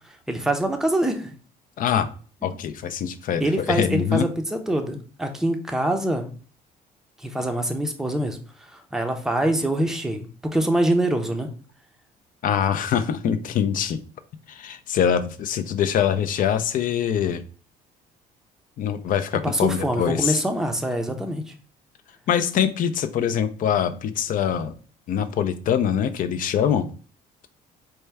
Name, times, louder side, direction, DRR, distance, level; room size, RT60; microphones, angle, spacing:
voice 1, 0.3-1.3 3.4-6.3 7.2-8.4 8.7-10.2 10.5-11.5 19.4-21.4, right 1 dB, 5° right, 5 dB, 0.5 m, -24 dB
voice 2, 1.8-2.1 2.4-4.3 12.4-14.0 14.5-17.4 18.8-20.4 22.3-24.7 25.1-26.9, left 8 dB, 55° left, 9 dB, 0.4 m, -23 dB
4.4 x 2.2 x 3.3 m, 0.40 s
cardioid pair, 110°, 17 cm